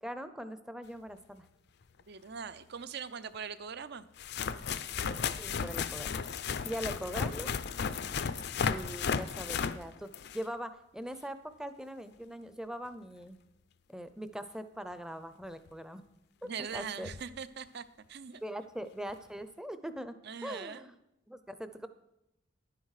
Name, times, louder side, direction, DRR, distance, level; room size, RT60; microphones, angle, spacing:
voice 1, 0.0-1.5 5.4-6.1 6.6-7.5 8.7-13.4 13.9-16.0 16.6-17.1 18.4-20.2 20.4-20.9 21.3-21.9, equal, 5° right, 10 dB, 0.6 m, -41 dB
sound 1, 2.0-2.1 3.3-3.4 4.2-10.5 15.7-15.8 16.8-16.9 17.0-17.2 19.1-19.2, left 6 dB, 60° left, 0.5 m, -34 dB
voice 2, 2.1-4.1 16.4-17.8 18.1-18.4 20.2-20.9, right 6 dB, 60° right, 13 dB, 0.6 m, -41 dB
11.5 x 9.2 x 4.8 m, 0.89 s
head